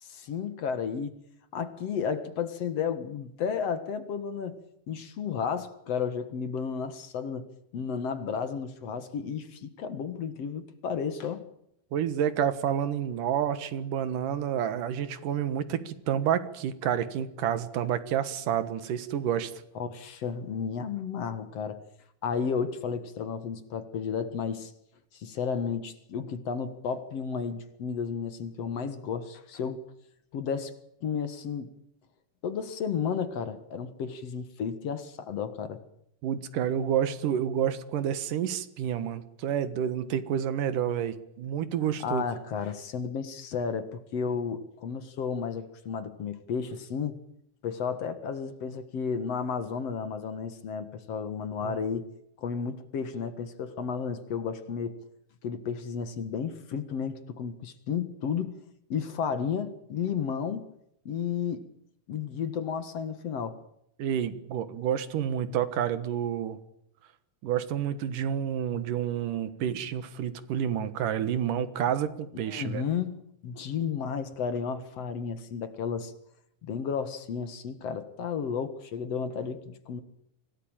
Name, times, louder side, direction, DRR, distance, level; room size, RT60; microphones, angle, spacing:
voice 1, 0.0-1.2 1.5-4.6 4.9-11.5 19.7-21.8 22.2-24.7 25.1-29.8 30.3-30.7 31.0-31.7 32.4-35.8 42.0-47.2 47.6-52.1 52.4-55.0 55.4-58.6 58.9-60.6 61.1-61.7 62.1-63.6 72.4-76.1 76.6-80.0, left 6 dB, 55° left, 11 dB, 2.5 m, -33 dB
voice 2, 11.9-19.5 36.2-42.2 51.6-51.7 64.0-66.6 67.4-72.8, right 9 dB, 85° right, 13 dB, 3.1 m, -29 dB
25.5 x 18.0 x 8.9 m, 0.78 s
omnidirectional pair, 3.6 m